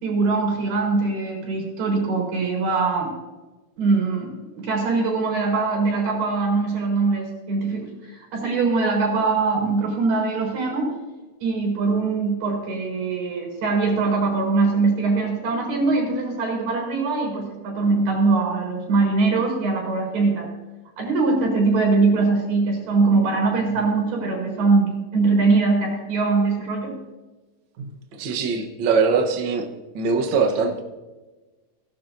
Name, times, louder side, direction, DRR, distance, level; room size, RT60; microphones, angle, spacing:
voice 1, 0.0-3.1 3.8-4.3 4.6-10.9 11.4-20.5 21.0-27.0 27.8-27.9, right 3 dB, 85° right, -1 dB, 5.7 m, -22 dB
voice 2, 28.2-29.7 29.9-30.8, right 5 dB, 65° right, 3 dB, 1.2 m, -21 dB
18.0 x 11.5 x 2.6 m, 1.2 s
omnidirectional pair, 3.8 m